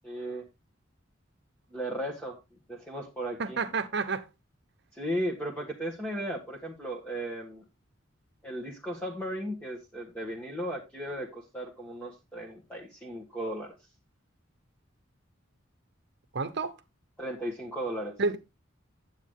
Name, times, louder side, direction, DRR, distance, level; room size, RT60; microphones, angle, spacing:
voice 1, 0.0-0.4 1.7-2.4 2.7-3.6 4.9-7.6 8.4-13.8 17.2-18.1, equal, 10° left, 1.5 m, -36 dB
voice 2, 3.4-4.2 16.3-16.7 18.2-18.4, right 4 dB, 60° right, 0.9 m, -29 dB
9.7 x 7.9 x 3.6 m
head